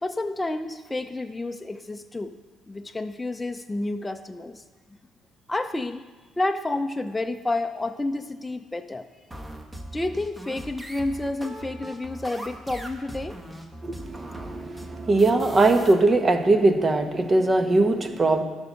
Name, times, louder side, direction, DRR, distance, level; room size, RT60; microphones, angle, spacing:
voice 1, 0.0-2.4 2.7-4.6 5.5-6.0 6.4-9.0 9.9-13.4, left 2 dB, 15° left, 6 dB, 0.6 m, -30 dB
sound 1, 9.3-15.9, right 1 dB, 15° right, 1.5 m, -40 dB
voice 2, 13.8-18.4, right 2 dB, 35° right, 7 dB, 1.2 m, -21 dB
12.0 x 5.4 x 6.4 m, 1.4 s
supercardioid pair, 65°, 0 cm